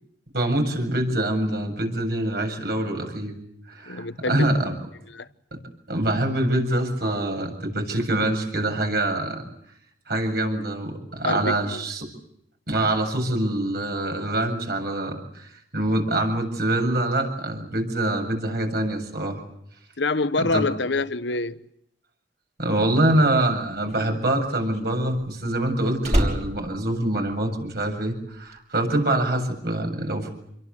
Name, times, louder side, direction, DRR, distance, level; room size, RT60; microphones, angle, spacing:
voice 1, 0.3-3.4 3.7-4.7 5.9-9.4 10.1-12.1 12.7-19.4 20.4-20.7 22.6-30.3, right 1 dB, 60° right, 7.6 m, -25 dB
voice 2, 3.9-4.6 5.1-5.3 11.2-11.8 20.0-21.6, left 3 dB, 85° left, 1.2 m, -26 dB
Slam, 23.2-27.8 28.1-28.5, equal, 40° right, 5.6 m, -28 dB
28.5 x 23.0 x 8.4 m
head